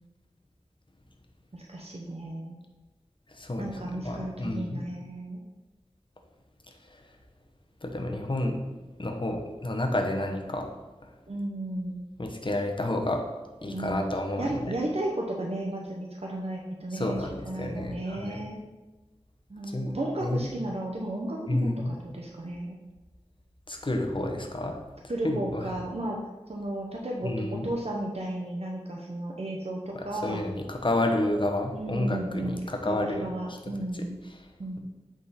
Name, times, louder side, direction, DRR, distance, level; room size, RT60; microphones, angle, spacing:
voice 1, 1.5-2.5 3.6-5.4 11.3-12.0 13.7-14.0 14.4-18.6 19.5-21.7 22.0-22.8 25.1-26.2 26.5-30.5 31.7-34.2 34.6-34.8, right 1 dB, 60° right, -1 dB, 0.8 m, -34 dB
voice 2, 3.3-4.8 7.8-8.6 9.0-10.7 12.2-13.2 13.6-14.6 16.9-18.4 19.7-19.9 20.2-20.5 21.5-21.9 23.7-24.8 25.2-25.7 27.2-27.7 29.9-33.3, left 1 dB, 45° left, 3 dB, 0.9 m, -30 dB
8.5 x 3.8 x 4.1 m, 1.2 s
wide cardioid pair, 55°, 12 cm